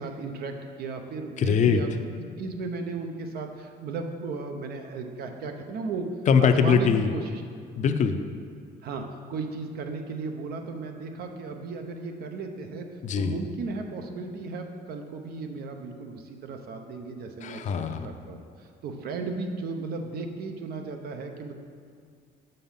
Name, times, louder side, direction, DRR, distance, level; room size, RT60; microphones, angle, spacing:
voice 1, 0.0-1.9 2.2-6.1 6.4-7.4 8.8-12.9 13.2-17.6 18.0-21.6, right 4 dB, 65° right, 5 dB, 0.9 m, -35 dB
voice 2, 1.4-1.8 6.3-7.1 7.8-8.2 13.0-13.3 17.4-18.1, left 6 dB, 45° left, 8 dB, 0.6 m, -22 dB
7.3 x 5.4 x 5.7 m, 2.2 s
cardioid pair, 110°, 17 cm